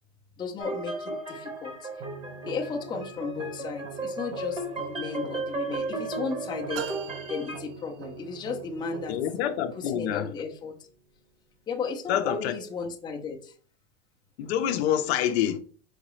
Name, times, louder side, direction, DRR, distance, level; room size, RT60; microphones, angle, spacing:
voice 1, 0.4-1.7 2.5-6.9 7.3-9.2 9.8-10.7 11.7-13.5, left 5 dB, 10° left, 0.5 m, -34 dB
sound 1, 0.6-7.6, right 2 dB, 15° right, 1.0 m, -35 dB
sound 2, 2.0-11.0, right 5 dB, 75° right, 0.9 m, -44 dB
sound 3, 6.7-8.4, right 10 dB, 45° right, 0.6 m, -39 dB
voice 2, 9.1-10.3 12.1-12.6 14.4-15.6, left 10 dB, 60° left, 0.6 m, -27 dB
4.9 x 2.9 x 3.0 m
hypercardioid pair, 125°, 36 cm